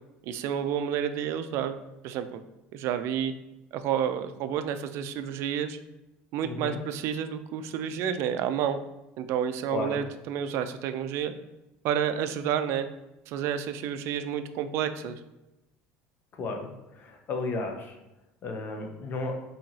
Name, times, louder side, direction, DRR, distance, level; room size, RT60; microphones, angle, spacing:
voice 1, 0.2-1.7 2.0-2.4 2.7-3.3 3.7-5.8 6.3-8.8 9.2-11.3 11.8-12.9 13.3-15.2, right 9 dB, 60° right, 10 dB, 0.3 m, -30 dB
voice 2, 6.4-6.8 9.7-10.0 16.3-18.0 18.4-19.4, left 3 dB, 40° left, 4 dB, 0.7 m, -34 dB
4.5 x 2.8 x 2.7 m, 0.96 s
cardioid pair, 135°, 5 cm